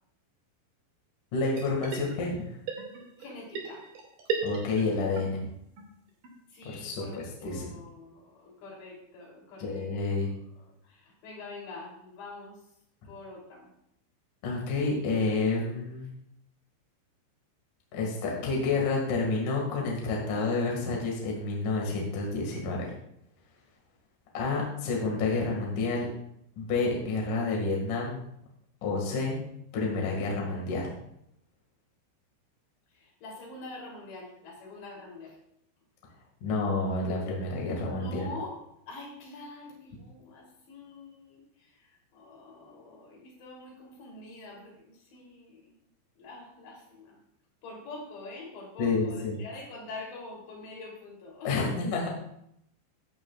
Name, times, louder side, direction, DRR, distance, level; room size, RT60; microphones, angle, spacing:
voice 1, 1.3-2.4 4.4-5.4 6.6-7.7 9.6-10.3 14.4-16.1 17.9-22.9 24.3-26.1 26.6-28.2 28.8-29.4 29.7-30.9 36.4-38.3 48.8-49.4 51.4-52.1, left 3 dB, 55° left, -2 dB, 2.9 m, -29 dB
sound 1, 1.5-2.4 2.7-5.2 5.5-5.6 5.8-5.9 6.2-6.3 6.7-6.8 7.0-7.1 7.5-7.6, right 5 dB, 50° right, 3.2 m, -35 dB
voice 2, 3.2-3.8 4.3-4.4 6.5-9.9 10.6-12.6 13.0-13.7 32.9-35.4 37.9-38.6 38.9-45.7 46.2-47.2 47.6-51.7, left 2 dB, 70° left, -2 dB, 5.2 m, -45 dB
15.0 x 10.5 x 2.4 m, 0.74 s
omnidirectional pair, 5.4 m